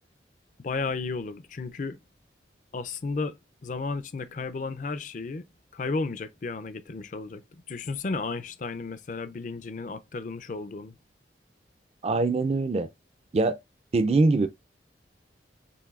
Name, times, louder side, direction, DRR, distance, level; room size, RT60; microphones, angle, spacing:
voice 1, 0.6-2.0 2.7-3.4 3.6-5.4 5.7-7.4 7.7-10.9, left 3 dB, 45° left, 0.4 m, -33 dB
voice 2, 12.0-12.9 13.3-13.6 13.9-14.5, right 3 dB, 35° right, 0.4 m, -23 dB
6.9 x 2.7 x 2.4 m
head